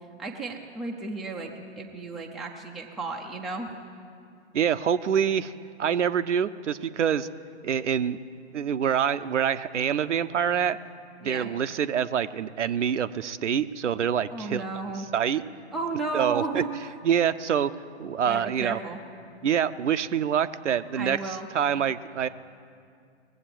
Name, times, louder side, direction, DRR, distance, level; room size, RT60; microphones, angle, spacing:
voice 1, 0.2-3.7 11.2-11.5 14.3-15.1 15.7-16.7 18.2-19.0 21.0-21.5, right 3 dB, ahead, -1 dB, 0.4 m, -33 dB
voice 2, 4.5-5.5 5.8-7.3 7.6-8.2 8.5-10.8 11.2-14.6 15.1-15.4 16.1-16.6 17.0-17.7 18.0-18.8 19.4-22.3, right 8 dB, 90° right, 11 dB, 0.7 m, -26 dB
20.0 x 7.9 x 7.6 m, 2.4 s
hypercardioid pair, 130°, 35 cm